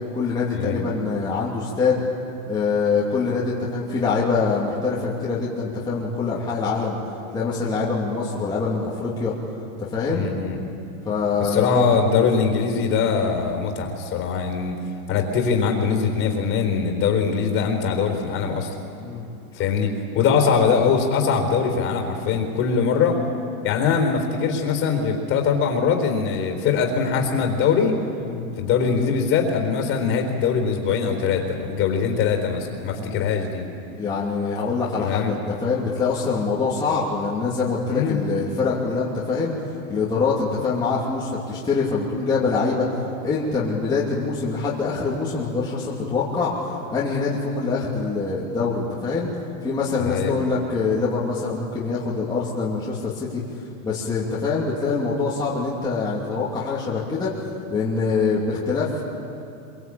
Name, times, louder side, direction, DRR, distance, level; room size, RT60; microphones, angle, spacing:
voice 1, 0.1-2.0 2.5-7.0 7.3-9.3 9.8-10.3 11.0-12.3 19.0-19.2 28.2-28.4 33.0-33.2 34.0-39.5 39.9-42.9 43.2-46.5 46.9-49.3 49.6-53.4 53.8-57.3 57.7-59.0, left 4 dB, 10° left, -7 dB, 2.8 m, -24 dB
voice 2, 10.1-10.6 11.4-14.8 15.1-18.7 19.6-23.2 23.6-28.0 28.6-33.6 34.9-35.3 37.9-38.2 50.0-50.3, left 6 dB, 30° left, 4 dB, 3.9 m, -22 dB
25.5 x 24.0 x 8.7 m, 2.6 s
supercardioid pair, 160°, 43 cm